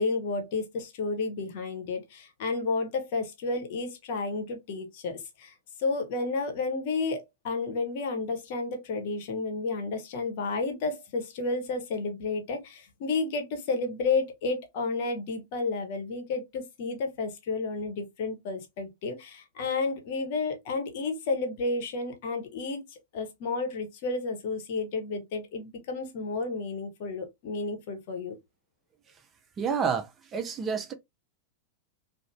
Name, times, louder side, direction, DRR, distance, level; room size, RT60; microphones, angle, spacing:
voice 1, 0.0-5.5 5.8-28.3, left 3 dB, 50° left, 0.8 m, -31 dB
voice 2, 29.6-30.9, right 6 dB, 25° right, 0.5 m, -29 dB
2.5 x 2.0 x 3.0 m
figure-of-eight pair, 90°, 0 cm